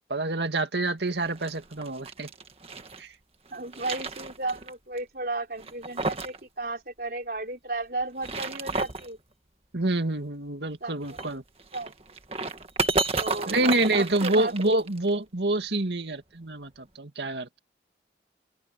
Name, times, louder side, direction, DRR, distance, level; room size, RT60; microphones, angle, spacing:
voice 1, 0.1-2.3 3.0-3.1 9.7-11.4 13.5-17.6, right 2 dB, 80° right, 2.1 m, -27 dB
sound 1, 1.2-3.0 3.5-4.7 5.0-5.1 5.6-6.4 6.7-6.8 8.0-9.1 11.0-15.1, right 3 dB, 35° right, 1.8 m, -32 dB
voice 2, 3.5-9.2 10.8-11.2 11.7-11.9 13.1-14.7, right 2 dB, 55° right, 4.5 m, -34 dB
open air
head